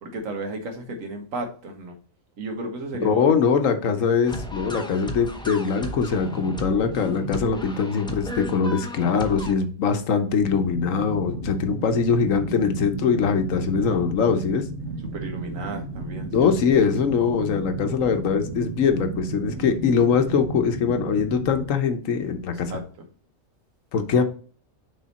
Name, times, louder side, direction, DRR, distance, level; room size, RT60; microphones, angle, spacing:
voice 1, 0.0-1.9 2.4-3.4 15.0-16.5 22.6-23.1 24.1-24.2, right 2 dB, 75° right, 1.5 m, -33 dB
voice 2, 3.0-14.6 16.3-22.7 23.9-24.2, left 6 dB, 75° left, 1.2 m, -22 dB
sound 1, 4.3-9.5, equal, 5° left, 0.5 m, -34 dB
sound 2, 10.4-21.7, right 3 dB, 60° right, 1.2 m, -34 dB
6.3 x 3.7 x 4.1 m
omnidirectional pair, 1.4 m